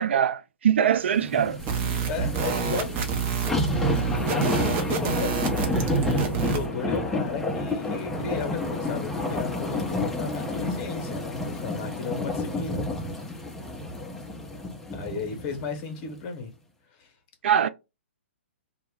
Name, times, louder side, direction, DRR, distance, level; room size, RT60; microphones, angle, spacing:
voice 1, 0.0-1.6 17.4-17.7, right 9 dB, 65° right, 0.3 m, -22 dB
sound 1, 1.2-15.6 16.1-16.2, left 1 dB, 5° left, 0.5 m, -30 dB
sound 2, 1.6-6.7, right 6 dB, 30° right, 0.7 m, -28 dB
voice 2, 2.1-3.1 3.7-12.8 13.1-13.4 14.9-16.5 16.9-17.1, left 5 dB, 35° left, 0.9 m, -35 dB
2.2 x 2.0 x 3.5 m
hypercardioid pair, 125°, 7 cm